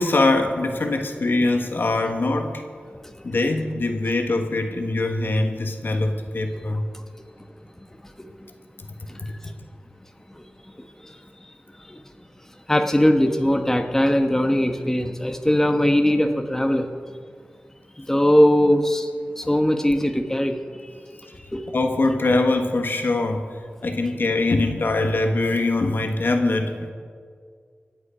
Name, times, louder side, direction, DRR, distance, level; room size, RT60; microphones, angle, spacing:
voice 1, 0.0-2.6 3.2-6.8 9.2-9.3 21.7-26.9, left 2 dB, 65° left, 5 dB, 1.4 m, -23 dB
voice 2, 7.8-8.1 9.1-9.5 10.3-10.4 10.8-11.5 11.8-12.0 12.7-16.9 18.0-19.1 19.4-20.9 21.5-21.7, left 1 dB, 10° left, 5 dB, 1.1 m, -21 dB
25.0 x 8.3 x 5.0 m, 2.1 s
wide cardioid pair, 75°, 4 cm